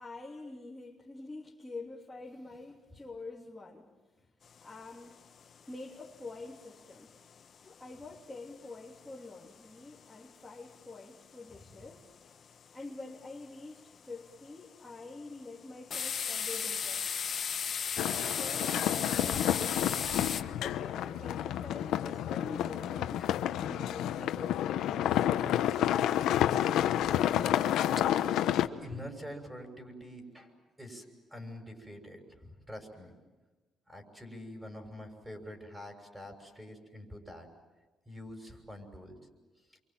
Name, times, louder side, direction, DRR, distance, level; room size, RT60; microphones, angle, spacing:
voice 1, 0.0-3.9 4.2-4.3 4.6-5.3 5.7-7.1 7.6-12.1 12.7-17.0 18.0-19.9 20.6-23.3 23.7-25.4, left 3 dB, 10° left, -5 dB, 3.1 m, -46 dB
sound 1, 4.6-4.7 5.1-5.2 5.4-5.7 6.1-6.9 7.2-8.4 8.7-10.1 10.6-10.8 11.0-11.1 11.5-11.9 12.2-12.7 13.2-13.5 14.0-14.6 15.0-15.2 15.9-20.4, left 7 dB, 50° left, 1.2 m, -35 dB
sound 2, 18.0-28.7, left 11 dB, 85° left, 1.0 m, -30 dB
voice 2, 28.4-30.5 30.8-33.1 33.9-37.5 38.1-39.2, equal, 10° right, 4 dB, 6.4 m, -46 dB
29.0 x 24.5 x 7.6 m, 1.2 s
cardioid pair, 90°, 0 cm